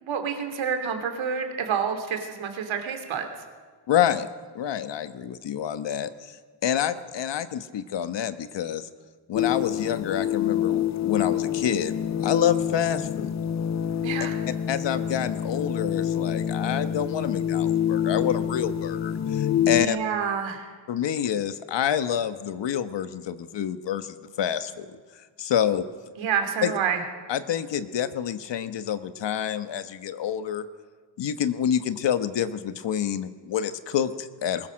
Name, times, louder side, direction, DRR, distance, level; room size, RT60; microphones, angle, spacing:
voice 1, 0.0-3.3 14.0-14.3 19.7-20.7 26.2-27.0, right 7 dB, 75° right, 6 dB, 2.7 m, -28 dB
voice 2, 3.9-4.3 4.5-6.4 6.6-8.9 9.3-11.9 12.2-13.3 14.7-20.0 20.9-24.9 25.4-25.8 26.6-26.7 27.3-30.6 31.2-34.7, left 9 dB, 65° left, 11 dB, 1.2 m, -27 dB
sound 1, 9.3-19.9, left 9 dB, 40° left, 0.5 m, -27 dB
21.5 x 19.5 x 6.4 m, 1.5 s
wide cardioid pair, 150°, 46 cm